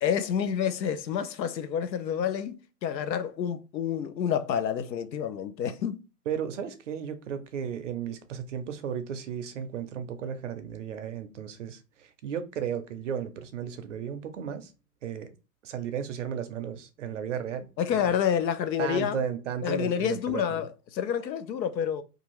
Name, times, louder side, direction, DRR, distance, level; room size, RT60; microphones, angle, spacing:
voice 1, 0.0-6.0 17.8-19.2 19.6-22.0, left 8 dB, 90° left, 0.6 m, -28 dB
voice 2, 6.3-14.7 15.0-15.3 15.6-18.2 18.8-20.6, right 8 dB, 50° right, 0.5 m, -34 dB
2.7 x 2.4 x 2.9 m
hypercardioid pair, 145°, 49 cm